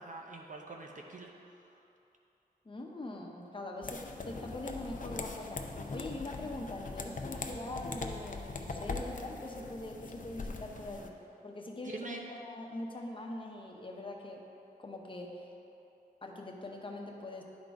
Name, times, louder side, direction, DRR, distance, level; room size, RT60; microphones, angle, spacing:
voice 1, 0.0-1.9 11.8-12.3, right 3 dB, 50° right, 1 dB, 0.6 m, -45 dB
voice 2, 2.6-5.6 5.9-11.2 11.4-14.4 14.8-15.4 16.2-17.4, left 2 dB, 30° left, 0 dB, 0.9 m, -42 dB
sound 1, 3.8-11.1, left 3 dB, 55° left, 0.6 m, -41 dB
10.5 x 3.9 x 4.6 m, 2.8 s
wide cardioid pair, 85°, 16 cm